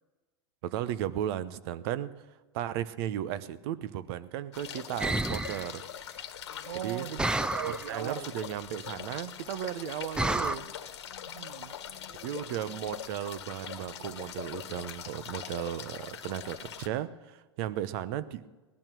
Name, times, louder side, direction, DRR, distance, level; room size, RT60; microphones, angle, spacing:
voice 1, 0.6-2.1 2.5-5.8 6.8-7.1 7.7-10.7 12.2-18.4, right 11 dB, 60° right, 15 dB, 0.9 m, -35 dB
sound 1, 4.5-16.9, left 9 dB, 85° left, 1.5 m, -42 dB
sound 2, 5.0-5.7 7.2-7.9 10.2-10.6, right 2 dB, 5° right, 0.5 m, -29 dB
voice 2, 6.7-8.3 11.2-11.7, right 11 dB, 85° right, 14 dB, 0.6 m, -38 dB
18.5 x 12.5 x 6.1 m, 1.2 s
hypercardioid pair, 105°, 14 cm